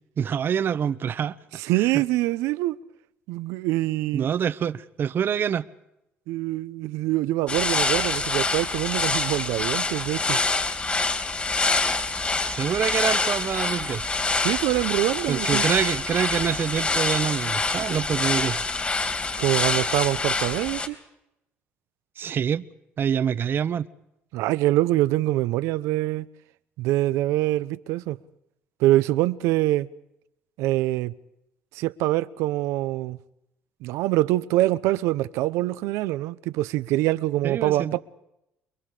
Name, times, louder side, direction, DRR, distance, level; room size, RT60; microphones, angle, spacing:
voice 1, 0.2-1.4 1.8-2.0 4.1-5.7 12.5-14.1 15.3-18.6 22.2-22.6 23.0-23.9 37.4-37.9, right 8 dB, 50° right, 1.1 m, -26 dB
voice 2, 1.6-2.8 3.3-4.3 6.3-10.4 14.4-15.6 19.4-21.0 24.3-26.3 26.8-28.2 28.8-29.9 30.6-31.1 31.7-33.2 33.8-38.0, right 16 dB, 85° right, 0.8 m, -24 dB
sound 1, 7.5-20.9, left 3 dB, 25° left, 3.3 m, -26 dB
29.0 x 22.5 x 5.0 m
cardioid pair, 95°, 5 cm